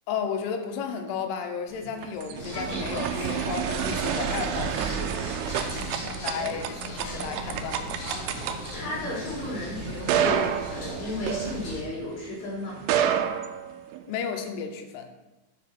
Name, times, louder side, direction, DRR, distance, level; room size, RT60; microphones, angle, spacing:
voice 1, 0.1-5.2 5.7-7.9 14.1-15.1, left 6 dB, 90° left, 4 dB, 3.0 m, -33 dB
sound 1, 1.8-12.1 12.7-14.2, right 9 dB, 85° right, 2.5 m, -30 dB
sound 2, 2.4-11.8, equal, 40° left, 2.9 m, -37 dB
voice 2, 8.3-12.8, left 2 dB, 65° left, -6 dB, 4.9 m, -34 dB
11.5 x 4.7 x 4.2 m, 1.0 s
omnidirectional pair, 4.6 m